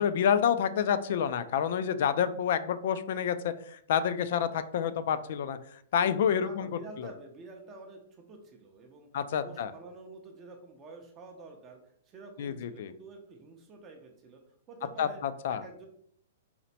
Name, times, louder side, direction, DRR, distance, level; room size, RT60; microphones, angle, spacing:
voice 1, 0.0-5.6 5.9-6.7 7.0-7.1 9.1-9.7 12.4-12.9 15.0-15.6, left 8 dB, 50° left, 12 dB, 0.3 m, -28 dB
voice 2, 6.3-9.1 9.4-11.8 12.1-14.4 14.7-15.2 15.5-15.9, right 3 dB, 20° right, 2 dB, 0.5 m, -49 dB
4.2 x 2.1 x 4.1 m, 0.65 s
hypercardioid pair, 165°, 0 cm